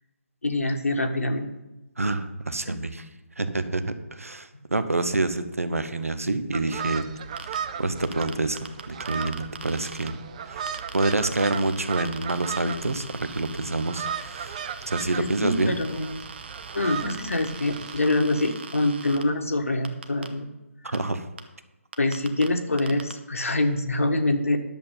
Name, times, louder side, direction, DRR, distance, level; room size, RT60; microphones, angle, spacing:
voice 1, 0.4-1.5 2.7-2.8 15.1-16.3 16.7-20.5 20.8-20.9 22.0-24.6, left 2 dB, 75° left, 6 dB, 1.4 m, -25 dB
voice 2, 2.0-3.1 3.4-7.0 7.5-8.6 8.9-10.2 10.5-10.6 10.9-14.6 14.9-15.8 20.8-21.3, right 2 dB, 75° right, 11 dB, 1.1 m, -27 dB
sound 1, 6.5-18.0, right 7 dB, 30° right, 0.5 m, -36 dB
sound 2, 7.4-7.6 8.0-10.1 10.7-19.2 19.8-20.3 20.9-21.0 21.4-21.5 21.9-22.5 22.8-23.1, right 5 dB, 50° right, 1.0 m, -41 dB
11.0 x 7.2 x 5.6 m, 1.0 s
figure-of-eight pair, 145°, 8 cm